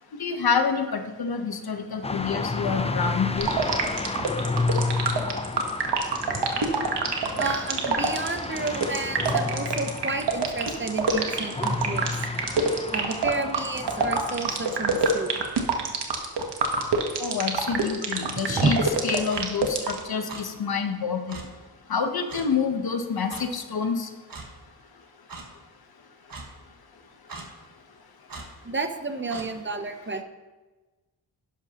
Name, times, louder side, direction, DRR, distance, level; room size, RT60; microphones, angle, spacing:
voice 1, 0.2-3.5 17.2-21.4 21.9-24.1, left 6 dB, 65° left, 6 dB, 1.1 m, -27 dB
sound 1, 2.0-15.4, left 3 dB, 15° left, 0.5 m, -32 dB
sound 2, 3.4-20.0, right 5 dB, 85° right, 1.3 m, -25 dB
voice 2, 7.4-12.3 12.9-15.3 18.5-18.8 28.6-30.2, right 3 dB, 30° right, 7 dB, 0.8 m, -30 dB
Clock, 19.3-19.5 20.3-20.4 21.3-21.4 22.3-22.5 23.3-23.5 24.3-24.5 25.3-25.4 26.3-26.5 27.3-27.5 28.3-28.5 29.3-29.5, right 3 dB, 60° right, 1.6 m, -39 dB
11.0 x 11.0 x 3.0 m, 1.2 s
wide cardioid pair, 95°, 40 cm